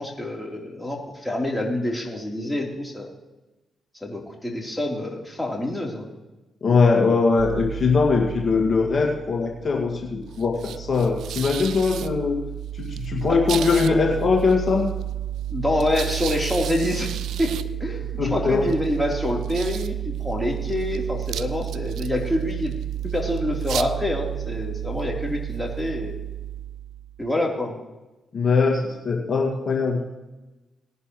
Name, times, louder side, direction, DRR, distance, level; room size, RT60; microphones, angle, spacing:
voice 1, 0.0-3.1 4.0-6.0 15.5-17.1 17.4-22.7 23.1-26.1 27.2-27.8, left 1 dB, 5° left, -2 dB, 4.0 m, -26 dB
voice 2, 6.6-12.4 12.7-14.8 18.2-18.7 28.3-30.0, left 4 dB, 50° left, -1 dB, 2.4 m, -21 dB
sound 1, 7.4-27.3, right 12 dB, 75° right, 0.4 m, -31 dB
19.5 x 11.0 x 3.3 m, 1.1 s
hypercardioid pair, 40°, 0 cm